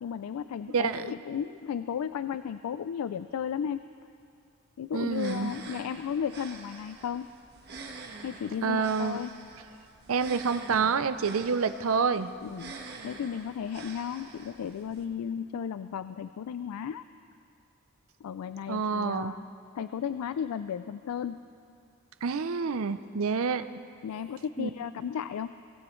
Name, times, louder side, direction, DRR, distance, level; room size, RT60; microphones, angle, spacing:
voice 1, 0.0-3.8 4.8-7.3 8.2-9.3 12.4-12.8 13.0-17.0 18.2-19.4 19.7-21.4 24.0-25.5, left 8 dB, 85° left, 12 dB, 0.3 m, -34 dB
voice 2, 0.7-1.1 4.9-5.5 8.6-9.2 10.1-12.3 18.7-19.3 22.2-23.6 24.6-24.7, right 5 dB, 70° right, 12 dB, 0.5 m, -28 dB
sound 1, 5.1-15.0, right 3 dB, 45° right, 1.4 m, -46 dB
23.0 x 16.5 x 3.1 m, 2.5 s
head